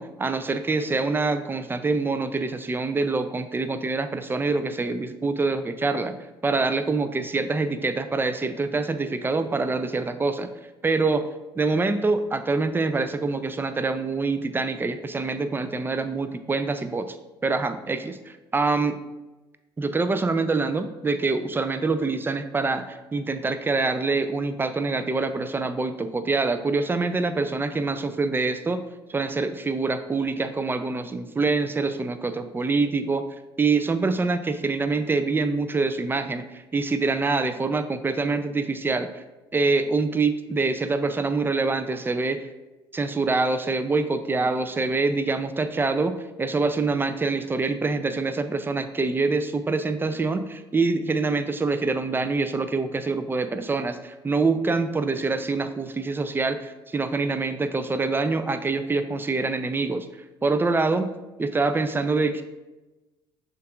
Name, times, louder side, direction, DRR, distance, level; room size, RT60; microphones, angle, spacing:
voice 1, 0.0-6.1 6.4-10.5 10.8-11.2 11.6-17.2 17.4-19.0 19.8-28.8 29.1-33.2 33.6-39.2 39.5-42.5 42.9-46.1 46.4-60.1 60.4-61.1 61.4-62.4, right 3 dB, 15° right, 10 dB, 0.4 m, -25 dB
6.4 x 2.5 x 2.3 m, 1.1 s
hypercardioid pair, 60°, 13 cm